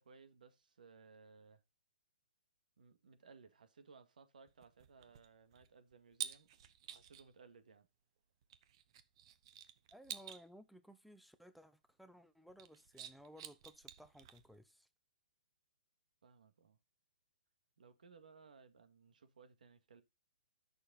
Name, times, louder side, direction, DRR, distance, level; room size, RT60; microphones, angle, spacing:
voice 1, 0.0-1.6 2.8-6.5 6.9-7.9 16.2-16.8 17.8-20.0, right 5 dB, 75° right, 2.1 m, -62 dB
sound 1, 4.5-7.3 8.4-10.5 12.5-14.6, right 10 dB, 40° right, 1.0 m, -50 dB
voice 2, 9.9-14.9, equal, ahead, 0.7 m, -59 dB
10.5 x 6.7 x 4.1 m
hypercardioid pair, 160°, 4 cm